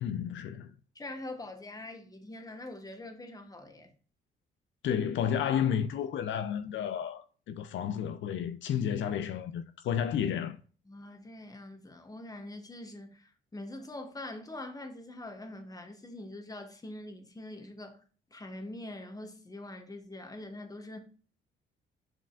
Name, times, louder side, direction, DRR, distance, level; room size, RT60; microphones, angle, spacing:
voice 1, 0.0-0.7 4.8-10.6, left 8 dB, 70° left, 0.6 m, -31 dB
voice 2, 0.9-3.9 10.9-18.0 18.3-21.0, left 1 dB, 20° left, 1.4 m, -44 dB
7.5 x 5.1 x 2.4 m
cardioid pair, 90°, 20 cm